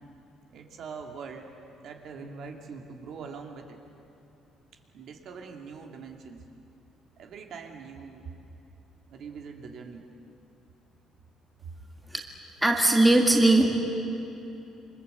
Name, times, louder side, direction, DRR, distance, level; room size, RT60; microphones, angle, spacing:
voice 1, 0.5-1.5 1.8-3.8 4.9-6.4 7.2-8.3 9.1-10.0, right 5 dB, 50° right, 3 dB, 2.6 m, -42 dB
voice 2, 12.6-13.8, right 2 dB, 5° right, 1 dB, 1.9 m, -20 dB
27.5 x 25.0 x 8.0 m, 2.8 s
cardioid pair, 170°, 0 cm